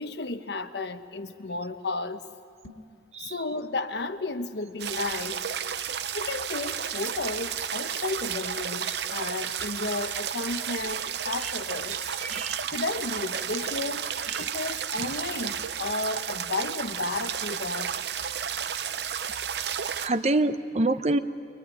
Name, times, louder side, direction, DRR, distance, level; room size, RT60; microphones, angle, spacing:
voice 1, 0.0-2.2 3.2-5.4 6.1-12.1 12.7-17.9, left 3 dB, 65° left, 9 dB, 1.1 m, -33 dB
sound 1, 2.5-3.0, left 1 dB, 85° left, 2.1 m, -49 dB
voice 2, 3.1-3.5 8.8-9.0 11.4-11.5 11.9-12.8 14.3-14.5 15.0-15.1 15.8-16.0 20.0-21.2, right 2 dB, 35° right, 11 dB, 0.8 m, -28 dB
sound 2, 4.8-20.1, right 8 dB, 65° right, 0.8 m, -32 dB
23.0 x 23.0 x 9.8 m, 2.3 s
head